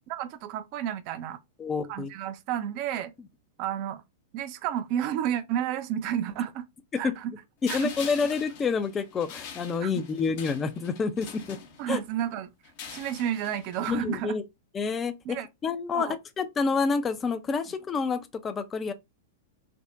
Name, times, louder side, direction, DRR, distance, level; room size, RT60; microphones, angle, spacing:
voice 1, 0.1-1.4 1.9-3.1 3.6-4.0 4.3-6.6 7.0-7.3 7.7-7.9 9.8-9.9 11.8-12.5 12.9-14.4 15.2-15.5 15.9-16.2, right 10 dB, 45° right, 0.4 m, -31 dB
voice 2, 1.6-2.1 6.9-7.1 7.6-11.6 11.9-12.0 13.9-14.4 14.7-15.4 15.6-18.9, left 5 dB, 20° left, 0.4 m, -28 dB
sound 1, 7.6-12.1 12.6-13.9, left 7 dB, 55° left, 0.8 m, -43 dB
3.4 x 2.1 x 2.5 m
hypercardioid pair, 105°, 0 cm